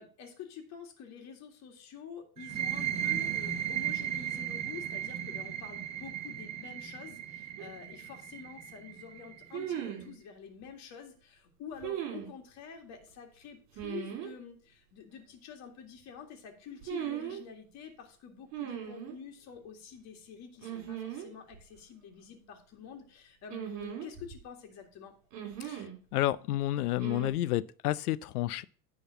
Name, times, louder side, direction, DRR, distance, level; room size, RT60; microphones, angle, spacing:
voice 1, 0.0-25.1, left 7 dB, 35° left, 2.3 m, -48 dB
sound 1, 2.4-9.8, right 10 dB, 15° right, 0.4 m, -36 dB
sound 2, 7.6-7.7 9.5-10.1 11.8-12.3 13.8-14.3 16.8-17.4 18.5-19.2 20.6-21.3 21.5-21.6 23.5-24.4 25.3-26.0 27.0-27.3, right 10 dB, 45° right, 3.7 m, -38 dB
voice 2, 26.1-28.6, left 14 dB, 70° left, 0.7 m, -30 dB
10.0 x 4.0 x 7.1 m
hypercardioid pair, 125°, 47 cm